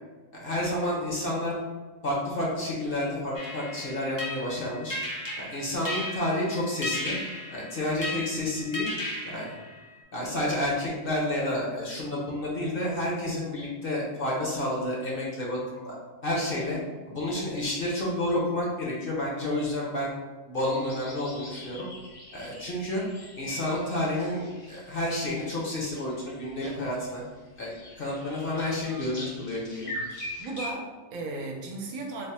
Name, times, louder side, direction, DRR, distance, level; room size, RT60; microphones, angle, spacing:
voice 1, 0.3-1.6 2.0-5.0 5.4-7.1 7.5-8.9 9.2-9.5 10.1-16.0 16.2-16.8 17.0-20.2 20.5-21.9 22.3-23.0 23.4-27.2 27.6-29.9, left 1 dB, 50° left, -4 dB, 0.8 m, -30 dB
sound 1, 3.3-10.0, left 1 dB, 25° left, 0.5 m, -36 dB
sound 2, 20.6-30.7, left 1 dB, 80° left, 1.6 m, -43 dB
voice 2, 29.8-32.3, right 2 dB, 80° right, 1 dB, 1.0 m, -37 dB
3.3 x 2.0 x 4.1 m, 1.3 s
omnidirectional pair, 1.4 m